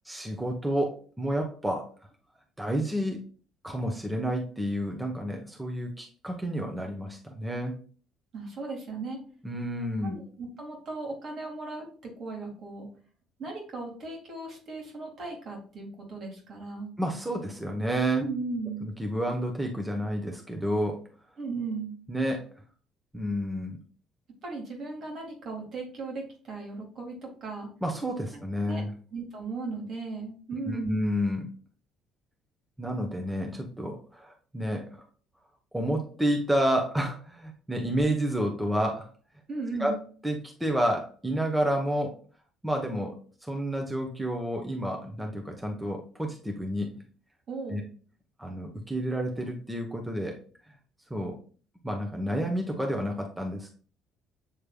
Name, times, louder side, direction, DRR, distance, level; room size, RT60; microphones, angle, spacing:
voice 1, 0.0-1.9 2.6-3.2 3.6-7.8 9.4-10.2 17.0-18.2 18.8-21.0 22.1-22.5 23.1-23.8 27.8-28.9 30.6-31.5 32.8-35.0 35.7-39.1 39.8-40.0 40.2-42.1 42.6-46.9 47.7-47.8 48.4-50.4 51.1-51.4 51.8-53.7, equal, 10° right, 1 dB, 1.0 m, -30 dB
voice 2, 8.3-9.2 10.0-12.9 13.4-16.9 18.2-18.9 21.4-22.0 24.4-27.7 28.7-28.8 29.1-31.0 39.5-40.0 47.5-47.8, right 3 dB, 55° right, 0 dB, 1.9 m, -37 dB
7.2 x 3.2 x 2.3 m, 0.41 s
hypercardioid pair, 60°, 0 cm